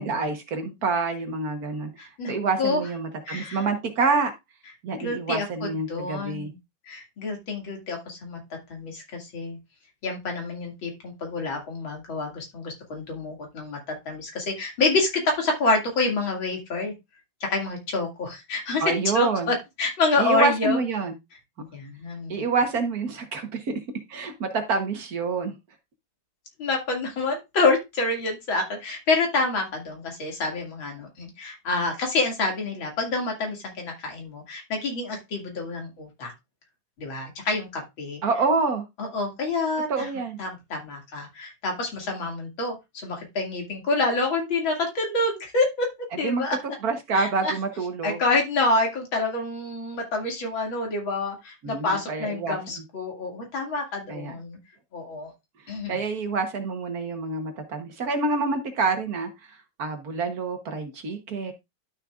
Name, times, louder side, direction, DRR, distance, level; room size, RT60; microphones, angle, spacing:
voice 1, 0.0-4.3 4.8-6.5 18.8-19.5 20.2-21.2 22.3-23.7 24.1-25.5 38.2-38.8 39.9-40.4 46.2-48.2 51.6-52.6 54.1-54.4 55.9-59.3 59.8-61.5, right 4 dB, 55° right, 7 dB, 1.6 m, -27 dB
voice 2, 2.0-2.8 3.3-3.6 4.9-6.5 6.9-8.4 8.7-9.6 10.0-16.9 17.4-20.8 21.7-22.5 26.6-36.3 37.0-38.2 39.0-39.9 40.4-45.9 46.2-46.6 47.1-47.5 48.0-54.6 54.9-55.3 55.7-56.0, left 3 dB, 85° left, 1 dB, 3.1 m, -27 dB
11.5 x 6.5 x 2.4 m, 0.22 s
omnidirectional pair, 2.1 m